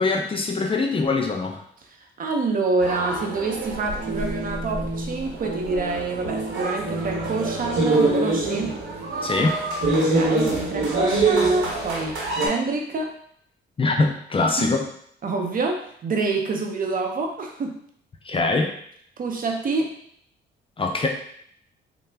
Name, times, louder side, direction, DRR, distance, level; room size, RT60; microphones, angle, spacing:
voice 1, 0.0-1.6 9.2-9.6 13.8-14.9 18.2-18.7 20.8-21.1, left 3 dB, 25° left, 2 dB, 0.4 m, -23 dB
voice 2, 2.2-8.8 9.9-13.1 14.6-14.7 15.2-17.8 19.2-20.0, right 3 dB, 45° right, 2 dB, 0.6 m, -27 dB
sound 1, 2.8-12.5, right 2 dB, 80° right, 0.9 m, -25 dB
3.3 x 2.0 x 3.3 m, 0.66 s
cardioid pair, 90°, 20 cm